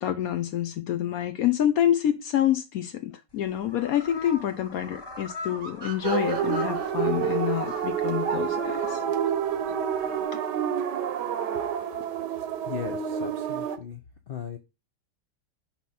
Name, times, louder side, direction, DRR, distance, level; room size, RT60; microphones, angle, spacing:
voice 1, 0.0-9.0, left 11 dB, 70° left, 0.9 m, -27 dB
sound 1, 3.3-10.2, left 2 dB, 25° left, 0.5 m, -42 dB
sound 2, 5.6-9.0, right 4 dB, 40° right, 0.8 m, -42 dB
sound 3, 6.0-13.8, right 8 dB, 75° right, 1.3 m, -28 dB
voice 2, 12.6-14.0 14.3-14.6, left 7 dB, 90° left, 0.4 m, -37 dB
6.0 x 3.0 x 5.4 m
omnidirectional pair, 1.9 m